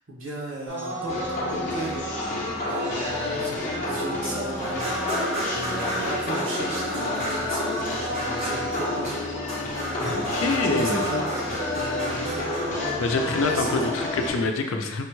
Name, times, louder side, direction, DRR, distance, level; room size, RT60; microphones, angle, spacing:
voice 1, 0.1-2.1 2.6-9.2 10.0-10.3 10.6-12.5 12.9-13.0 13.4-13.9, right 2 dB, 80° right, -4 dB, 1.0 m, -35 dB
sound 1, 0.7-14.3, right 1 dB, 60° right, 0.9 m, -34 dB
sound 2, 1.1-14.4, left 3 dB, 40° left, 0.6 m, -31 dB
sound 3, 4.6-13.4, equal, 30° right, 0.7 m, -33 dB
voice 2, 10.3-11.0 13.0-15.0, left 3 dB, 85° left, 4 dB, 0.4 m, -25 dB
5.2 x 2.2 x 3.0 m, 1.1 s
head